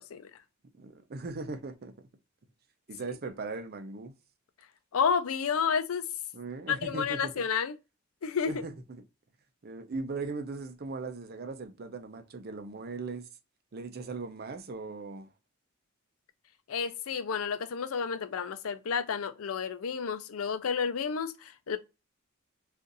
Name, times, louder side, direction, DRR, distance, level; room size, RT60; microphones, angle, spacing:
voice 1, 0.8-2.1 2.9-4.1 6.3-7.5 8.5-8.7 9.6-13.3 13.7-15.3, right 3 dB, 45° right, 0.5 m, -39 dB
voice 2, 4.9-6.1 6.7-7.8 8.2-8.6 16.7-21.8, left 6 dB, 90° left, 0.5 m, -30 dB
3.8 x 2.5 x 2.5 m
head